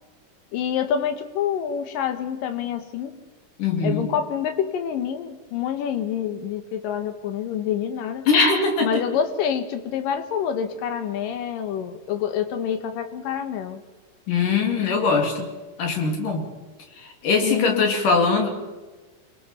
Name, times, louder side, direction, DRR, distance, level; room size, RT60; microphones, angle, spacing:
voice 1, 0.5-3.2 3.8-8.2 8.8-13.8 17.4-17.9, left 8 dB, 90° left, 8 dB, 2.8 m, -27 dB
voice 2, 3.6-4.1 8.3-9.0 14.3-15.5 15.8-16.4 17.0-18.5, left 4 dB, 75° left, 2 dB, 4.1 m, -21 dB
29.0 x 21.5 x 4.2 m, 1.2 s
omnidirectional pair, 3.8 m